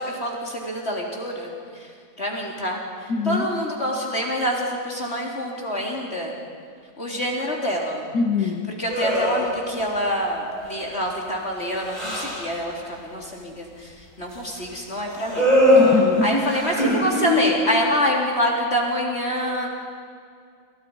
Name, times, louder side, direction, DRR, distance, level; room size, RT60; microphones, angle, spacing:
voice 1, 0.0-1.5 2.2-2.8 3.3-6.3 7.0-8.0 8.8-12.7 13.0-13.7 14.2-15.5 16.2-19.7, equal, 35° left, -1 dB, 4.0 m, -26 dB
voice 2, 3.1-3.5 8.1-8.7 15.8-16.5, left 4 dB, 55° left, 7 dB, 1.9 m, -23 dB
sound 1, 8.9-9.8 10.4-10.9 11.3-12.6 15.1-17.7, left 1 dB, 20° right, 6.7 m, -21 dB
29.0 x 28.5 x 5.6 m, 2.2 s
omnidirectional pair, 2.0 m